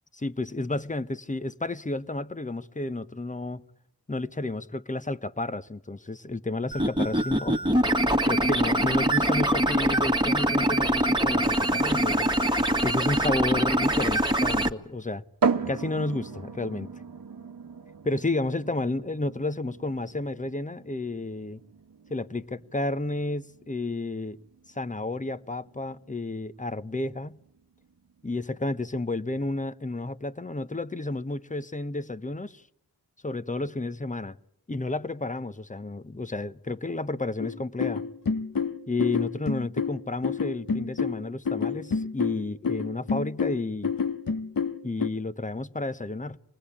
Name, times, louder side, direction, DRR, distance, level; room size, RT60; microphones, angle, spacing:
voice 1, 0.2-3.6 4.1-7.6 8.2-12.3 12.8-15.2 15.7-16.9 18.0-21.6 22.1-24.4 24.7-27.4 28.2-32.6 33.2-34.4 34.7-38.0 38.9-43.9 44.8-46.4, left 2 dB, 20° left, 1.1 m, -31 dB
sound 1, 6.7-14.7, right 1 dB, 10° right, 2.0 m, -24 dB
sound 2, 15.4-28.9, right 5 dB, 60° right, 1.3 m, -36 dB
sound 3, 37.4-45.1, left 5 dB, 60° left, 1.5 m, -29 dB
27.0 x 20.0 x 8.7 m
cardioid pair, 50°, 39 cm